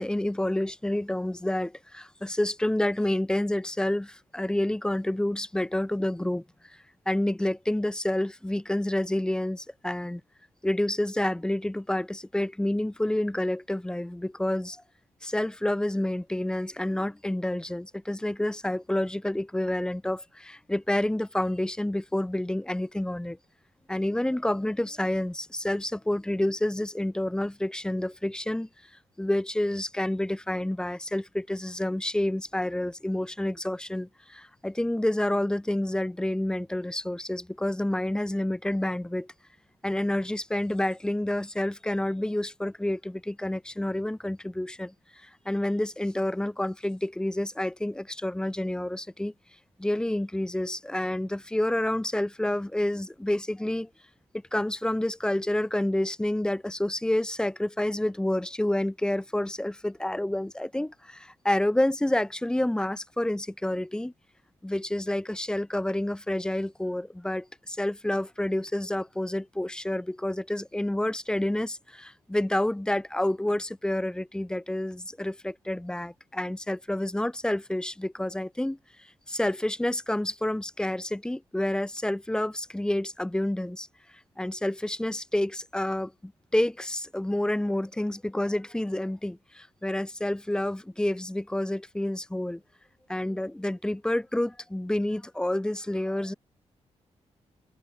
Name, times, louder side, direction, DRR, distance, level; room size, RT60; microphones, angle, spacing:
voice 1, 0.0-6.8 7.1-10.2 10.6-14.8 15.2-23.4 23.9-28.7 29.2-39.3 39.8-44.9 45.2-49.3 49.8-53.9 54.5-64.1 64.6-78.8 79.3-83.9 84.4-92.6 93.1-96.3, left 1 dB, 5° left, 5.8 m, -29 dB
wide cardioid pair, 165°, 12 cm